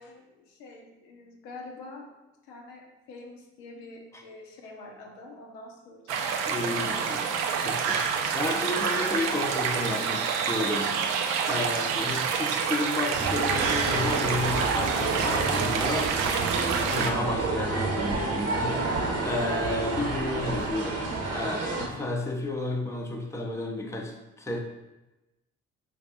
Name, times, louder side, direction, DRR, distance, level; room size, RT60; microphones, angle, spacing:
voice 1, 0.0-2.1 2.4-6.3 6.7-7.0 11.4-11.9, left 2 dB, 75° left, 1 dB, 0.6 m, -45 dB
sound 1, 6.1-17.1, right 6 dB, 65° right, 0.5 m, -28 dB
voice 2, 6.5-7.2 7.6-8.0 8.3-10.9 11.5-16.1 16.9-18.8 19.2-24.6, left 2 dB, 10° left, 2 dB, 0.6 m, -32 dB
sound 2, 13.1-21.9, right 3 dB, 45° right, 0.8 m, -29 dB
4.1 x 2.4 x 3.4 m, 1.0 s
hypercardioid pair, 45°, 34 cm